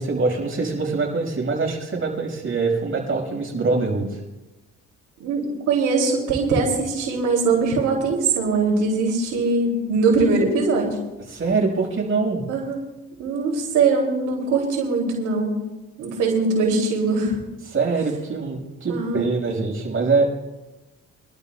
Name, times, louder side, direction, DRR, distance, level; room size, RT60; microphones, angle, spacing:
voice 1, 0.0-4.2 11.3-12.4 17.7-20.3, right 4 dB, 45° right, 1 dB, 5.7 m, -23 dB
voice 2, 5.7-11.0 12.5-12.8 13.2-15.6 16.0-17.4 18.9-19.3, right 4 dB, 90° right, -1 dB, 3.0 m, -21 dB
24.5 x 12.5 x 2.4 m, 1.1 s
cardioid pair, 90°, 30 cm